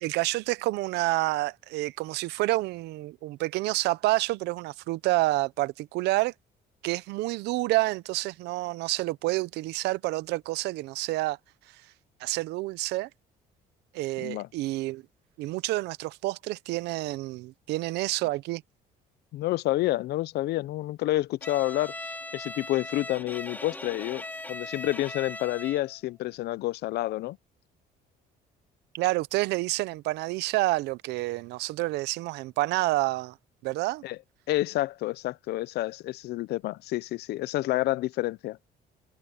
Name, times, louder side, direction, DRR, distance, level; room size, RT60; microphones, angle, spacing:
voice 1, 0.0-6.3 6.8-11.4 12.2-13.1 13.9-15.0 15.4-18.6 28.9-33.4 33.6-34.0, right 19 dB, 85° right, 0.7 m, -28 dB
voice 2, 14.2-14.5 19.3-24.2 24.5-27.4 34.0-34.2 34.5-38.6, left 16 dB, 75° left, 0.6 m, -29 dB
Bowed string instrument, 21.4-26.0, left 2 dB, 10° left, 4.4 m, -39 dB
cardioid pair, 110°, 17 cm